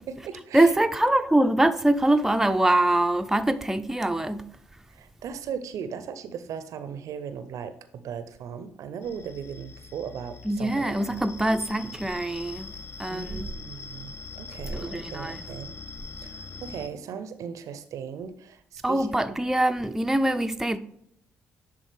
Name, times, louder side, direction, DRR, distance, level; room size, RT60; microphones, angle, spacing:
voice 1, 0.0-0.7 4.9-11.2 13.1-15.7 16.2-19.4, right 7 dB, 60° right, 0.5 m, -38 dB
voice 2, 0.5-4.5 10.4-12.7 13.0-13.5 14.7-15.4 18.8-20.8, right 1 dB, 5° right, 0.5 m, -23 dB
sound 1, 9.0-16.9, left 4 dB, 40° left, 0.6 m, -43 dB
10.0 x 3.7 x 3.4 m
hypercardioid pair, 45°, 6 cm